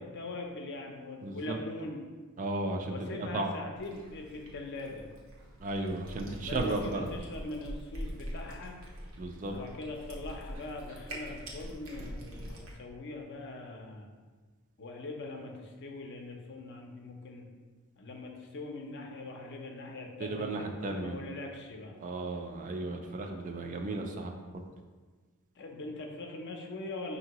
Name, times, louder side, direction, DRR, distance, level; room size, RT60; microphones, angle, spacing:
voice 1, 0.0-2.0 2.9-5.1 6.4-8.8 9.5-14.1 14.8-17.5 18.0-22.0 25.6-27.2, left 2 dB, 55° left, 2 dB, 0.5 m, -42 dB
voice 2, 1.2-1.6 2.4-3.5 5.6-7.1 9.2-9.5 20.2-21.2 22.0-24.6, right 2 dB, 35° right, 4 dB, 0.4 m, -35 dB
Cat, 3.8-12.7, equal, 90° right, 0.9 m, -44 dB
5.3 x 2.7 x 2.9 m, 1.4 s
head